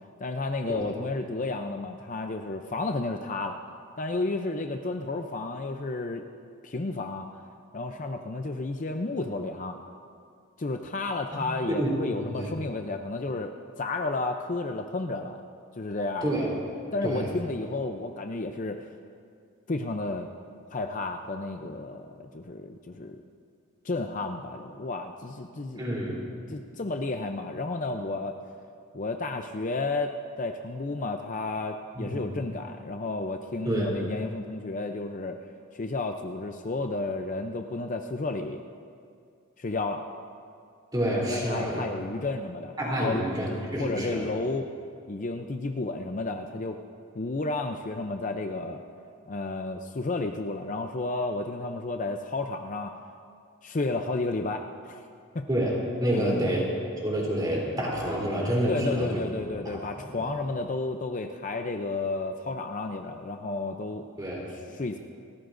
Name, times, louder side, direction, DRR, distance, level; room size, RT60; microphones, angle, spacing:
voice 1, 0.2-3.6 4.0-6.2 6.6-7.3 7.7-9.8 10.6-15.4 15.8-16.3 16.9-18.9 19.7-20.3 20.7-23.2 23.8-25.8 26.5-28.4 28.9-35.4 35.7-38.6 39.6-40.0 41.3-43.3 43.8-44.7 45.1-46.8 47.2-48.8 49.3-52.9 53.6-55.0 55.3-55.5 56.1-56.6 58.7-64.1 64.5-65.0, left 2 dB, 35° left, 5 dB, 0.5 m, -32 dB
voice 2, 11.8-12.5 16.2-16.5 17.0-17.3 25.8-26.2 32.0-32.2 33.6-33.9 40.9-41.8 42.8-44.2 55.5-56.7 57.0-59.2 59.6-59.8 64.2-64.4, right 1 dB, 20° right, -4 dB, 3.4 m, -28 dB
28.5 x 14.5 x 2.6 m, 2.3 s
head